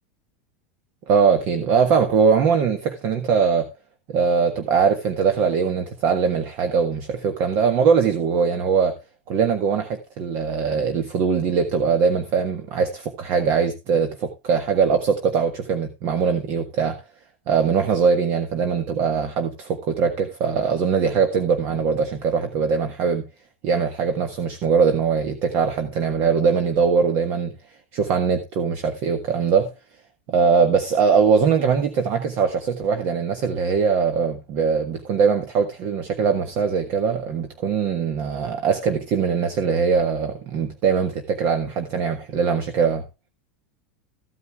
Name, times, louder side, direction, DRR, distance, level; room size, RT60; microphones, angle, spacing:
voice 1, 1.1-3.7 4.1-8.9 9.3-17.0 17.5-23.2 23.6-27.5 27.9-29.7 30.3-43.0, right 6 dB, 40° right, 1.3 m, -21 dB
14.5 x 9.3 x 2.3 m
supercardioid pair, 165°, 6 cm